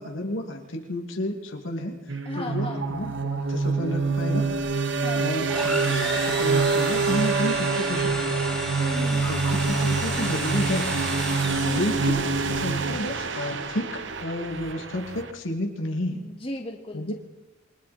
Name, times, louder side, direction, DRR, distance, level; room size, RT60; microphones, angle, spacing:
voice 1, 0.0-1.9 2.3-4.5 5.2-8.6 9.1-10.9 11.6-13.9 14.2-16.3 16.9-17.1, left 1 dB, 80° left, 2 dB, 2.6 m, -31 dB
sound 1, 2.1-13.0, right 4 dB, 80° right, 1.8 m, -28 dB
voice 2, 2.3-2.8 5.0-5.3 8.8-9.3 11.6-11.9 16.1-17.1, left 1 dB, 30° left, 1 dB, 2.4 m, -36 dB
fx drone abl, 2.9-15.3, right 4 dB, 65° right, 1.3 m, -29 dB
sound 2, 5.5-12.2, left 1 dB, ahead, 5.5 m, -34 dB
28.0 x 24.0 x 4.4 m, 1.0 s
head